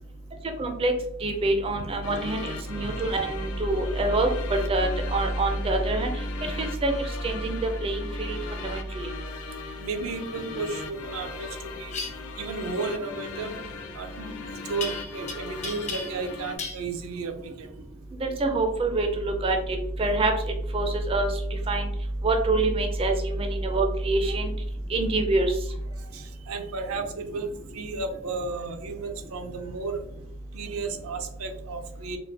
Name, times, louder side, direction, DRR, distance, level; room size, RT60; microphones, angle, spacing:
voice 1, 0.6-0.9 1.2-4.3 4.7-6.1 6.6-6.9 7.2-8.4 8.7-8.8 18.2-19.6 20.0-20.3 20.7-21.3 21.7-21.9 22.2-24.5 24.9-25.5, right 2 dB, 25° right, 4 dB, 0.4 m, -25 dB
sound 1, 2.0-16.6, left 5 dB, 80° left, 0.4 m, -39 dB
voice 2, 9.8-11.9 12.3-13.6 13.9-14.4 14.6-17.7 25.9-30.0 30.5-32.2, right 4 dB, 80° right, 6 dB, 0.5 m, -33 dB
sound 2, 11.9-12.1 14.8-15.3 15.6-16.3 16.6-16.8, left 4 dB, 30° left, 0.5 m, -34 dB
4.0 x 2.1 x 3.3 m, 0.74 s
head